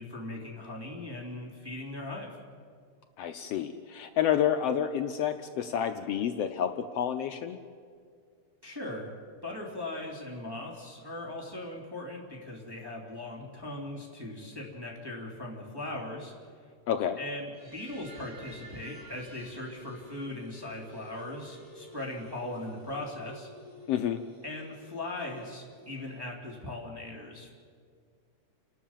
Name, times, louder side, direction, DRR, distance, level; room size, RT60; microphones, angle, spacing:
voice 1, 0.0-2.4 8.6-9.1 9.4-16.6 17.2-23.5 24.4-27.5, left 2 dB, 10° right, -3 dB, 2.8 m, -39 dB
voice 2, 3.2-7.6 16.9-17.2 23.9-24.2, left 9 dB, 75° left, 7 dB, 1.5 m, -29 dB
Lonely Computer World, 17.4-26.3, equal, 85° right, 9.1 m, -51 dB
29.5 x 12.5 x 7.4 m, 2.1 s
omnidirectional pair, 3.5 m